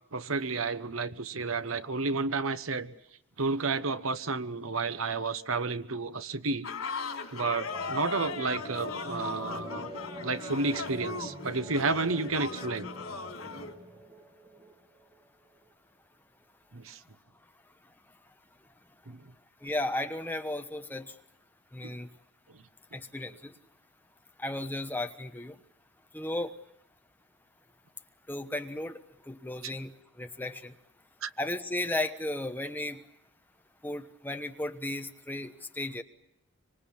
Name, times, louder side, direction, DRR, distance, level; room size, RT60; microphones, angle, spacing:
voice 1, 0.1-2.9 3.4-6.7 7.3-9.9 10.2-12.9 16.7-17.0 19.1-19.2 21.8-22.0 29.6-29.7 31.2-31.3, right 3 dB, 75° right, 1.1 m, -31 dB
sound 1, 6.6-13.7, left 4 dB, 85° left, 3.3 m, -38 dB
sound 2, 7.7-15.7, right 1 dB, 20° right, 2.1 m, -45 dB
voice 2, 19.6-21.1 21.7-22.1 22.9-23.5 24.4-25.5 26.1-26.6 28.3-29.0 29.3-30.7 31.4-33.0 33.8-36.0, left 1 dB, 10° left, 1.1 m, -35 dB
25.5 x 25.5 x 7.3 m
head